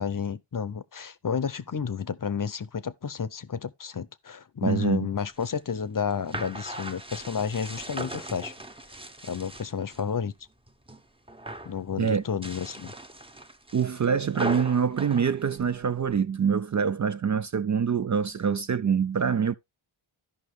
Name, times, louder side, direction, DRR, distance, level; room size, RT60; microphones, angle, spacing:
voice 1, 0.0-8.5 9.2-10.3 11.6-12.9, left 7 dB, 40° left, 0.7 m, -31 dB
voice 2, 4.6-5.1 12.0-12.2 13.7-19.5, right 7 dB, 40° right, 0.4 m, -25 dB
sound 1, 5.2-10.1 10.5-11.0 11.3-11.8 12.3-16.2, right 1 dB, 10° right, 0.8 m, -39 dB
12.5 x 5.4 x 3.2 m
cardioid pair, 50°, 50 cm